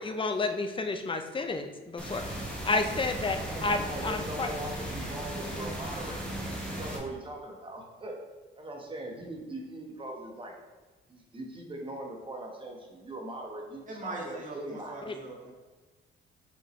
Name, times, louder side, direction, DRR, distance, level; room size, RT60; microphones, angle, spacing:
voice 1, 0.0-4.5 15.1-15.2, left 3 dB, 25° left, 7 dB, 0.6 m, -31 dB
sound 1, 2.0-7.0, right 1 dB, 5° left, 1.6 m, -36 dB
voice 2, 3.4-6.2 6.7-8.2 8.6-10.6 11.1-15.0, right 1 dB, 25° right, 1 dB, 1.2 m, -40 dB
voice 3, 13.9-15.5, right 2 dB, 40° right, -2 dB, 1.8 m, -40 dB
6.1 x 5.2 x 3.2 m, 1.3 s
cardioid pair, 90°, 20 cm